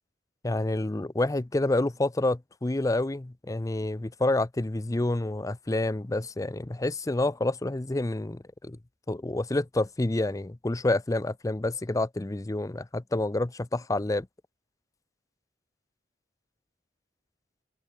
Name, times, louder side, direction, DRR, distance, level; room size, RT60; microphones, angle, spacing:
voice 1, 0.4-8.8 9.1-14.3, left 2 dB, 20° left, 0.5 m, -28 dB
head